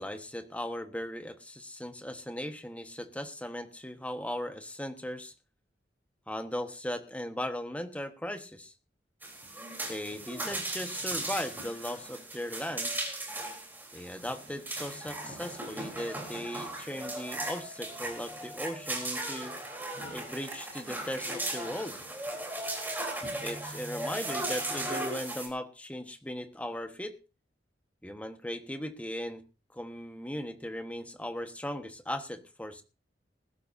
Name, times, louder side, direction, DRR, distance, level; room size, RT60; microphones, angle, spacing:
voice 1, 0.0-5.3 6.3-8.7 9.9-12.9 13.9-19.5 20.1-22.0 23.4-27.1 28.0-29.4 29.7-32.8, left 1 dB, 10° left, 7 dB, 1.4 m, -38 dB
sound 1, 9.2-25.5, right 2 dB, 10° right, 3.8 m, -37 dB
20.0 x 12.0 x 2.8 m, 0.30 s
head